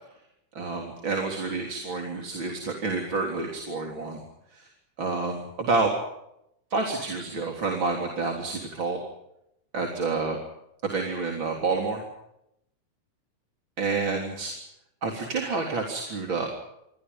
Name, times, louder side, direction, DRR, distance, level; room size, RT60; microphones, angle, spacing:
voice 1, 0.6-4.2 4.5-4.6 5.0-5.9 6.7-9.0 9.7-10.4 10.8-12.0 13.8-14.5 15.0-16.5, right 3 dB, 40° right, 1 dB, 4.1 m, -28 dB
28.5 x 24.5 x 5.5 m, 0.81 s
omnidirectional pair, 3.4 m